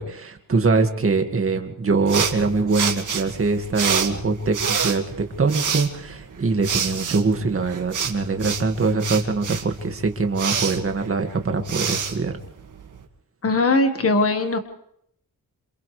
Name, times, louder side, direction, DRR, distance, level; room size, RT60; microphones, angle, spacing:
voice 1, 0.0-12.4, right 4 dB, 40° right, 5 dB, 2.1 m, -23 dB
sound 1, 2.1-13.0, right 7 dB, 60° right, 2.1 m, -28 dB
voice 2, 13.4-14.6, left 2 dB, 40° left, 7 dB, 1.7 m, -20 dB
28.0 x 27.5 x 3.4 m, 0.73 s
wide cardioid pair, 140°, 34 cm